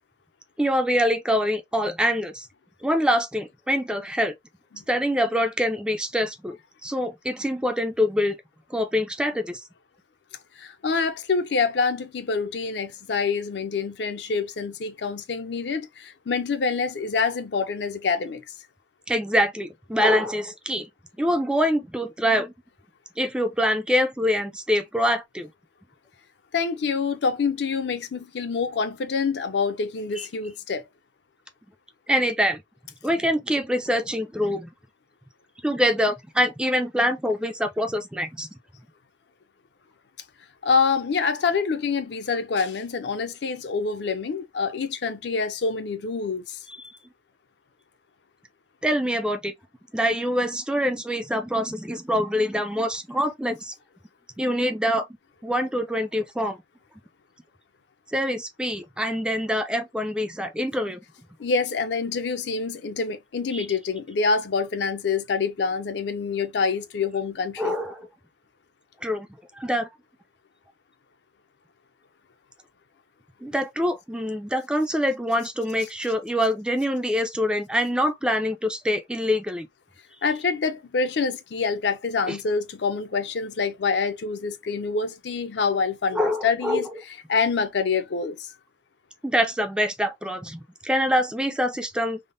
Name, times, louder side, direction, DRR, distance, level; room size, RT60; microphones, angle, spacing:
voice 1, 0.6-2.5 2.8-4.4 4.9-6.6 6.8-8.4 8.7-9.6 19.1-20.9 21.2-22.5 23.2-25.5 30.2-30.3 32.1-32.6 33.0-34.7 35.6-38.5 46.8-46.9 48.8-49.5 49.9-53.7 54.4-55.1 55.4-56.6 58.1-61.0 63.5-63.7 67.6-68.1 69.0-69.3 69.5-69.9 73.4-79.7 82.3-82.4 86.1-86.8 89.2-92.2, equal, 5° right, 0.3 m, -25 dB
voice 2, 10.6-18.5 26.5-30.8 40.6-46.6 61.4-67.7 80.2-86.8 87.3-88.5, left 5 dB, 65° left, 0.5 m, -26 dB
3.5 x 2.1 x 2.5 m
head